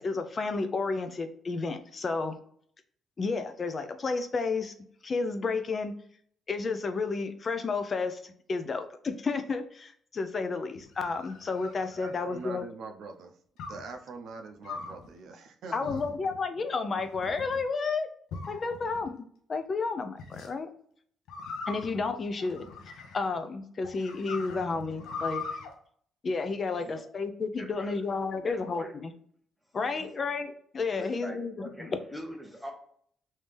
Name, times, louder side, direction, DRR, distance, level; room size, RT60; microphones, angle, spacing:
voice 1, 0.0-2.4 3.2-4.7 5.0-5.9 6.5-12.6 15.7-18.1 18.5-20.7 21.7-22.6 23.1-25.4 26.2-29.1 29.7-31.5 31.8-31.9, left 4 dB, 40° left, 0.5 m, -31 dB
sound 1, 10.8-12.6 13.6-13.9 14.6-15.1 15.9-16.4 17.0-17.6 18.3-19.1 20.2-20.5 21.3-23.4 23.8-25.7, left 4 dB, 85° left, 0.7 m, -41 dB
voice 2, 12.0-13.4 13.7-16.2 16.6-16.7, right 4 dB, 75° right, 0.5 m, -43 dB
voice 3, 27.6-28.0 28.4-28.9 30.0-30.1 30.9-32.7, equal, ahead, 0.8 m, -43 dB
3.2 x 2.7 x 3.5 m
cardioid pair, 90°, 0 cm